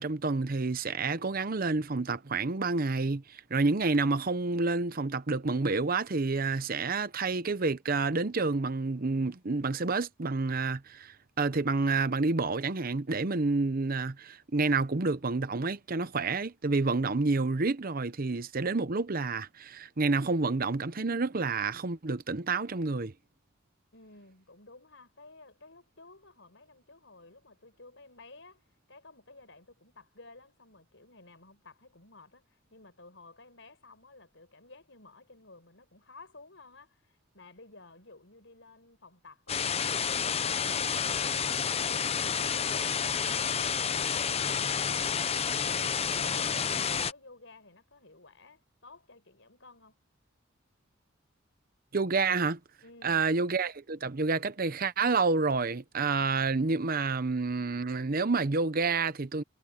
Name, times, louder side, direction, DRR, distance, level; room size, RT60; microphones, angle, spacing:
voice 1, 0.0-23.1 51.9-52.6 53.0-59.4, right 3 dB, 45° right, 0.8 m, -29 dB
voice 2, 23.9-28.6 28.9-39.8 40.1-50.0 52.8-53.2, left 3 dB, 65° left, 6.6 m, -54 dB
sound 1, 39.5-47.1, left 7 dB, 30° left, 0.7 m, -30 dB
head